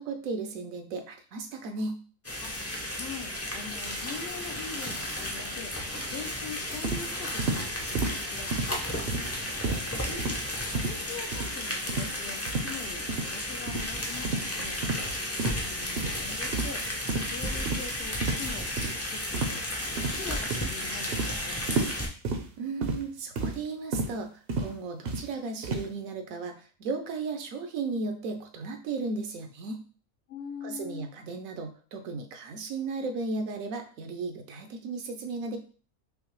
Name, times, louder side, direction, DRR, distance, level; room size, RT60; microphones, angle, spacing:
voice 1, 0.0-2.0 22.6-29.8 30.6-35.6, right 3 dB, 80° right, 5 dB, 1.1 m, -35 dB
sound 1, 2.2-22.1, left 1 dB, 20° left, 0.4 m, -33 dB
voice 2, 2.4-5.8 6.0-9.3 9.8-10.4 10.7-14.8 15.4-19.6 19.9-21.7 30.3-31.1, left 6 dB, 65° left, 2 dB, 0.7 m, -43 dB
sound 2, 6.8-7.0 7.4-7.6 7.9-8.2 8.5-8.7 9.1-9.4 9.6-9.8 10.2-10.4 10.7-11.0 11.3-11.5 11.9-12.1 12.5-12.7 13.1-13.3 13.7-13.8 14.2-14.5 14.8-15.0 15.4-15.6 16.0-16.2 16.5-16.8 17.1-17.3 17.7-17.9 18.2-18.4 18.8-18.9 19.3-19.6 20.0-20.3 20.5-20.7 21.1-21.3 21.7-21.9 22.2-22.4 22.8-23.0 23.4-23.6 23.9-24.1 24.5-24.7 25.0-25.2 25.6-25.9, right 3 dB, 55° right, 0.7 m, -30 dB
5.5 x 2.0 x 3.0 m, 0.39 s
omnidirectional pair, 1.4 m